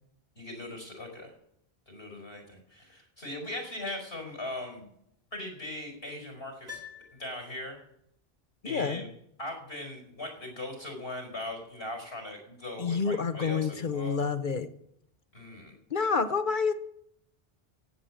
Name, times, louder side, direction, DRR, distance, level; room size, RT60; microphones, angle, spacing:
voice 1, 0.4-1.3 1.9-4.9 5.3-6.8 7.1-7.8 8.6-9.1 9.4-14.2 15.3-15.8, left 1 dB, 80° left, 3 dB, 5.2 m, -39 dB
Piano, 6.6-7.9 8.2-8.3, left 7 dB, 90° right, 3.8 m, -47 dB
voice 2, 8.6-9.0 12.8-14.7 15.9-16.7, left 5 dB, 55° left, 10 dB, 1.1 m, -28 dB
17.0 x 8.6 x 7.5 m, 0.74 s
omnidirectional pair, 1.0 m